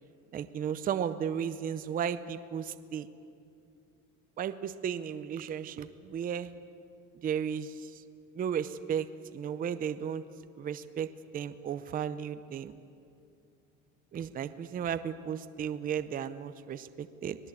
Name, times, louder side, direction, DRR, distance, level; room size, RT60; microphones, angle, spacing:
voice 1, 0.3-3.1 4.4-6.5 7.2-7.7 8.4-9.1 9.3-10.2 10.6-11.1 11.3-12.7 14.1-17.4, right 8 dB, 25° right, 12 dB, 0.6 m, -34 dB
25.5 x 18.5 x 8.3 m, 2.5 s
cardioid pair, 155°, 35 cm